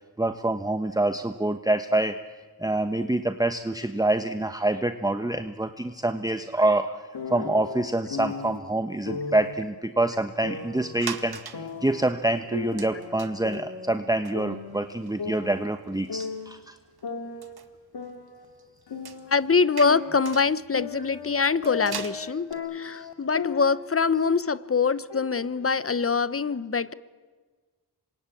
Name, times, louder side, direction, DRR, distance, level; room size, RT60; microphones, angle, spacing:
voice 1, 0.2-2.2 2.6-16.8 22.8-23.1, right 2 dB, 10° right, 1.2 m, -26 dB
sound 1, 7.1-8.6 9.1-9.6 10.4-12.1 12.5-14.1 14.3-16.6 17.0-19.5 19.8-23.9 24.2-24.6 25.1-26.1, left 5 dB, 80° left, 2.5 m, -37 dB
sound 2, 11.0-11.7 12.1-12.2 12.7-13.6 14.0-14.1 14.2-17.1 17.4-22.5, right 6 dB, 65° right, 1.9 m, -41 dB
voice 2, 19.3-26.9, left 5 dB, 35° left, 1.0 m, -24 dB
27.0 x 23.5 x 8.6 m
cardioid pair, 60°, 40 cm